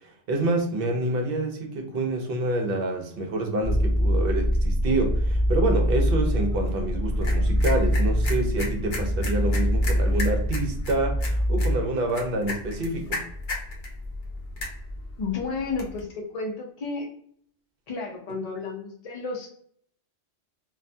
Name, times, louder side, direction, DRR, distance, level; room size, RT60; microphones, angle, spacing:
voice 1, 0.0-13.2, right 2 dB, 60° right, 3 dB, 0.7 m, -27 dB
sound 1, 3.6-11.8, equal, 15° right, 0.7 m, -24 dB
sound 2, 6.5-16.0, left 2 dB, 50° left, 0.8 m, -36 dB
voice 2, 15.2-17.1 17.9-19.5, left 4 dB, 65° left, -1 dB, 0.3 m, -32 dB
2.3 x 2.2 x 2.5 m, 0.62 s
omnidirectional pair, 1.2 m